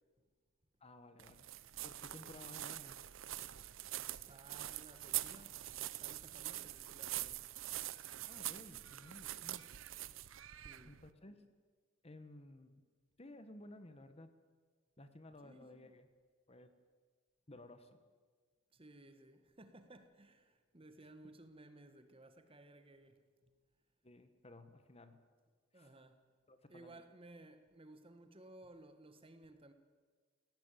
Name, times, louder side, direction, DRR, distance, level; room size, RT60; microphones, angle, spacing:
voice 1, 0.8-1.5 1.8-3.0 8.2-9.7 10.8-11.4 12.0-12.8 13.2-14.3 15.0-16.1 16.5-16.7 17.5-18.0 24.0-25.2 25.7-26.0 26.5-27.0, left 1 dB, 30° left, 1.2 m, -56 dB
sound 1, 1.2-11.1, right 14 dB, 70° right, 0.7 m, -44 dB
voice 2, 4.3-5.6 6.0-7.5 8.2-8.3 10.6-11.0 15.4-15.9 18.7-23.5 25.7-26.2 26.7-29.7, right 1 dB, 25° right, 1.4 m, -58 dB
18.0 x 17.0 x 9.1 m
head